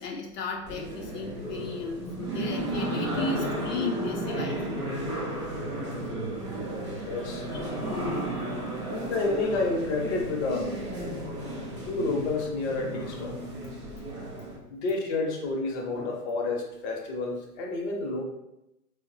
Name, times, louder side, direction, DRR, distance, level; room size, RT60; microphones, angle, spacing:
voice 1, 0.0-4.9 7.5-8.7 11.0-11.4 13.6-13.7 14.4-14.5, left 4 dB, 80° left, 1 dB, 0.6 m, -36 dB
sound 1, 0.7-14.6, right 1 dB, 20° right, 0.3 m, -33 dB
voice 2, 7.0-7.5 8.8-10.7 11.8-13.4 14.7-18.2, left 3 dB, 45° left, 0 dB, 0.8 m, -30 dB
3.3 x 2.1 x 2.6 m, 0.89 s
hypercardioid pair, 120°, 47 cm